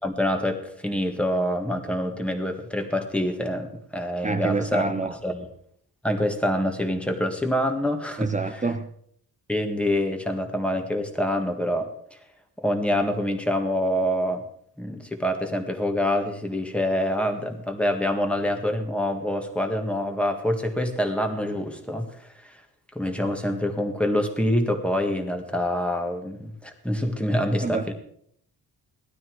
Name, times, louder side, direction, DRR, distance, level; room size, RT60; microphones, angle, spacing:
voice 1, 0.0-4.9 5.2-5.5 6.0-8.3 9.5-11.9 12.6-14.4 14.8-22.6 22.9-27.9, left 1 dB, 5° left, 4 dB, 1.7 m, -26 dB
voice 2, 4.2-5.2 8.2-8.9 27.6-27.9, right 3 dB, 20° right, 8 dB, 0.7 m, -27 dB
18.0 x 12.5 x 4.7 m, 0.65 s
wide cardioid pair, 155°, 38 cm